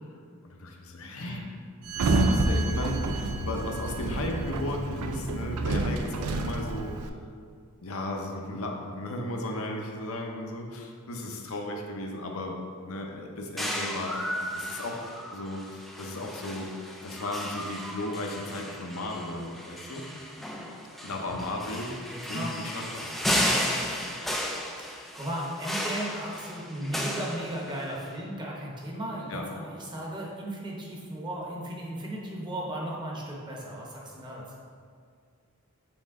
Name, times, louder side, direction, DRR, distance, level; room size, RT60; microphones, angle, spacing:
voice 1, 0.6-1.4 2.0-7.1 7.8-12.6 12.8-14.2 14.5-15.0 15.3-16.7 17.0-20.1 21.0-21.9 22.3-23.1 29.3-29.5, left 1 dB, 70° left, 1 dB, 0.7 m, -35 dB
voice 2, 1.2-1.5 22.1-22.6 23.3-23.4 25.1-34.6, right 1 dB, 20° right, -3 dB, 0.9 m, -36 dB
Sliding door, 1.9-7.1, right 2 dB, 85° right, 0.4 m, -28 dB
sound 1, 13.6-28.0, equal, ahead, 0.3 m, -34 dB
6.2 x 4.2 x 3.6 m, 2.2 s
head